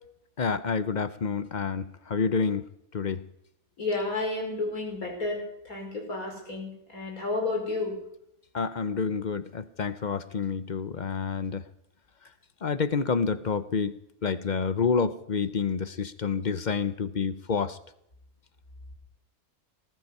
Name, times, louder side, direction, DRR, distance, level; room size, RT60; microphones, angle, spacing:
voice 1, 0.4-2.7 2.9-3.2 8.5-11.7 12.6-14.0 14.2-17.8, left 5 dB, 45° left, 0.6 m, -28 dB
voice 2, 3.8-7.9, left 3 dB, 70° left, 5.4 m, -31 dB
19.5 x 12.5 x 5.5 m
omnidirectional pair, 1.5 m